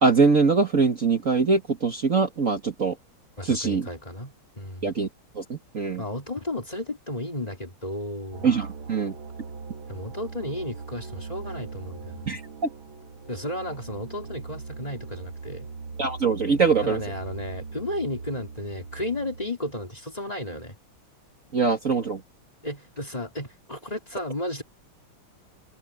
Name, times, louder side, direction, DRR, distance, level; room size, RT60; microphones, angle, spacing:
voice 1, 0.0-3.0 3.4-3.9 4.8-5.1 5.4-6.0 8.4-9.1 12.3-12.4 16.0-17.0 21.5-22.2, right 4 dB, 40° right, 2.0 m, -22 dB
voice 2, 3.4-4.9 6.0-8.5 9.9-12.3 13.3-15.7 16.8-20.8 22.6-24.6, left 1 dB, 15° left, 2.8 m, -33 dB
sound 1, 8.3-19.5, right 4 dB, 70° right, 2.5 m, -40 dB
omnidirectional pair, 2.3 m